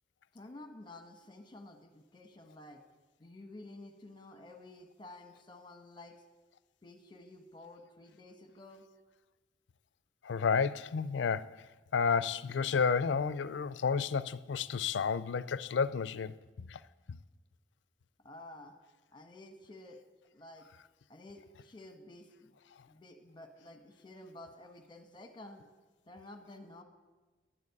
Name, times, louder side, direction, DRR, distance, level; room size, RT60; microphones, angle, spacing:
voice 1, 0.3-2.8 3.2-6.2 6.8-8.9 18.2-18.7 19.1-20.0 20.3-20.7 21.1-22.5 22.9-25.6 26.1-26.8, left 2 dB, 25° left, 1.2 m, -51 dB
voice 2, 10.2-11.6 11.9-16.8 17.1-17.2, left 5 dB, 80° left, 0.4 m, -31 dB
11.5 x 7.6 x 9.5 m
head